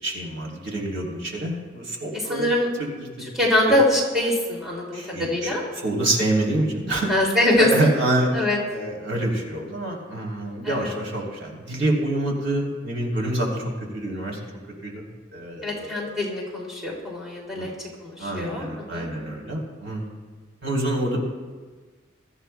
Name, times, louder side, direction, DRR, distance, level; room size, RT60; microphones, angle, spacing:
voice 1, 0.0-2.5 2.8-3.1 4.9-5.5 5.8-7.1 7.6-8.3 8.7-13.6 13.9-14.4 14.8-15.0 15.3-16.2 17.5-17.7 18.2-20.0 20.6-21.2, right 1 dB, 85° right, -2 dB, 3.5 m, -26 dB
voice 2, 2.3-2.7 3.3-5.6 7.1-7.9 8.3-8.6 10.6-10.9 15.6-17.7 18.0-18.7 18.9-19.1, left 1 dB, ahead, -5 dB, 2.8 m, -23 dB
22.5 x 13.5 x 2.3 m, 1.4 s
head